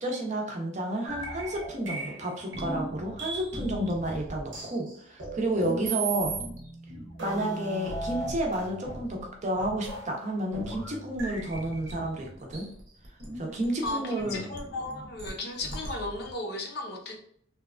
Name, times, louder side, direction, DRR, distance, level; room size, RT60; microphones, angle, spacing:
voice 1, 0.0-6.3 7.2-12.7 13.4-14.4, right 1 dB, 40° right, 1 dB, 0.6 m, -31 dB
sound 1, 1.1-16.3, right 1 dB, 75° right, 0.8 m, -37 dB
voice 2, 13.8-17.2, left 2 dB, 60° left, 2 dB, 0.6 m, -35 dB
2.8 x 2.2 x 2.4 m, 0.65 s
head